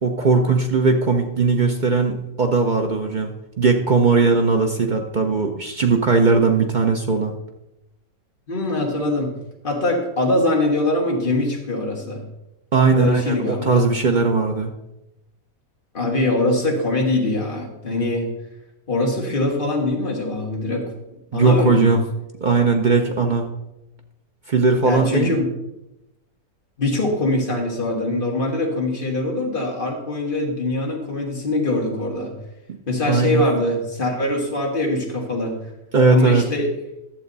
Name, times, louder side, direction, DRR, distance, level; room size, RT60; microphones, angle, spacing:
voice 1, 0.0-7.3 12.7-14.7 21.3-22.0 22.4-23.5 24.5-25.3 32.7-32.8 33.1-33.4 35.9-36.4, right 4 dB, 65° right, 3 dB, 0.4 m, -18 dB
voice 2, 8.5-9.3 9.6-12.2 12.9-13.8 15.9-18.3 18.9-20.9 21.3-21.9 24.8-25.5 26.8-32.3 32.9-35.6 36.1-36.7, left 2 dB, 30° left, -1 dB, 1.8 m, -23 dB
12.0 x 7.1 x 4.0 m, 0.93 s
omnidirectional pair, 1.8 m